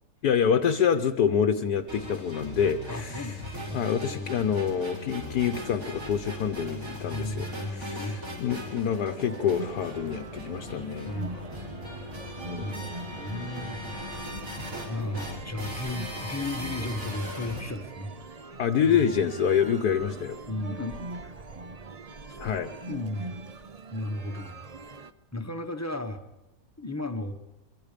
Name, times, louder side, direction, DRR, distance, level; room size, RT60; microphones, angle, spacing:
voice 1, 0.2-3.4 3.7-11.2 12.5-12.9 18.6-20.4 22.4-22.7, left 7 dB, 65° left, 6 dB, 1.4 m, -27 dB
sound 1, 1.9-17.6, left 1 dB, 50° right, 6.8 m, -39 dB
voice 2, 2.9-4.4 7.1-8.5 11.1-11.8 12.6-13.8 14.9-18.1 18.8-19.3 19.9-20.2 20.5-21.3 22.3-22.4 22.9-23.4 23.9-24.6 25.3-26.2 26.8-27.3, left 1 dB, 10° left, 6 dB, 1.1 m, -35 dB
sound 2, 8.8-25.1, right 3 dB, 70° right, 0.3 m, -42 dB
24.5 x 24.5 x 5.2 m, 0.97 s
omnidirectional pair, 1.9 m